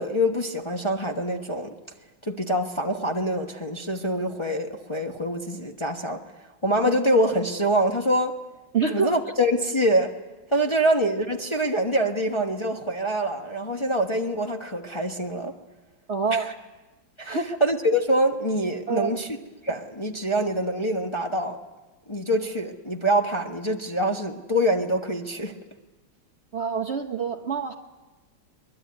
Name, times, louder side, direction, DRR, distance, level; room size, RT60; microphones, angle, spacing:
voice 1, 0.0-1.7 2.2-6.2 6.6-8.3 8.9-10.1 10.5-15.5 16.3-16.5 17.2-19.4 19.6-21.6 22.1-25.6, equal, 20° left, 2 dB, 1.0 m, -25 dB
voice 2, 8.7-9.1 16.1-16.5 17.3-17.6 18.9-19.1 26.5-27.7, right 5 dB, 45° right, 3 dB, 1.0 m, -26 dB
22.5 x 21.5 x 9.6 m, 1.2 s
omnidirectional pair, 2.0 m